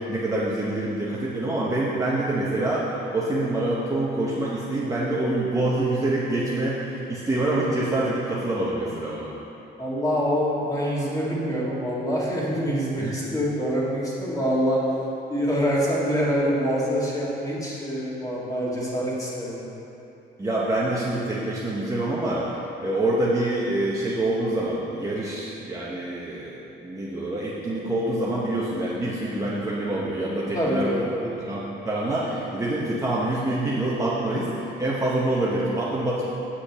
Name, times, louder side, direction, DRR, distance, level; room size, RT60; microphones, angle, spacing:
voice 1, 0.0-9.3 13.0-13.2 20.4-22.5 22.8-31.0 31.4-36.2, right 1 dB, 15° right, -7 dB, 0.9 m, -26 dB
voice 2, 9.8-14.8 15.3-19.7 30.5-31.3, equal, 15° left, -6 dB, 1.8 m, -25 dB
8.5 x 5.1 x 7.2 m, 2.9 s
cardioid pair, 165°, 20 cm